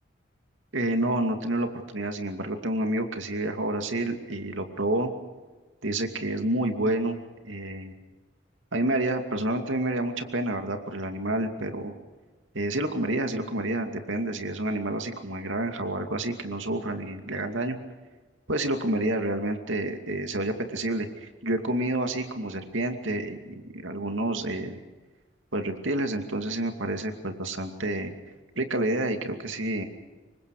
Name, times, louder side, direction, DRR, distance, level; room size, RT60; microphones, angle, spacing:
voice 1, 0.7-5.1 5.8-7.9 8.7-11.9 12.5-17.8 18.5-24.8 25.5-28.1 28.6-29.8, right 1 dB, 75° right, 5 dB, 2.6 m, -29 dB
27.5 x 24.0 x 5.0 m, 1.3 s
head